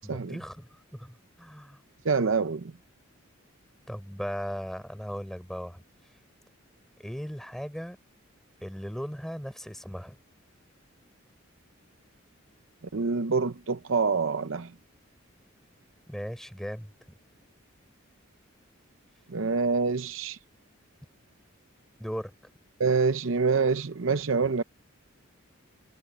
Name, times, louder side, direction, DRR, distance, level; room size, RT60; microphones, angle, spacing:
voice 1, 0.0-1.8 3.9-5.8 7.0-8.0 8.6-10.2 16.1-16.9 22.0-22.3, equal, ahead, 6.5 m, -37 dB
voice 2, 2.0-2.7 12.9-14.7 19.3-20.4 22.8-24.6, right 4 dB, 65° right, 0.7 m, -26 dB
head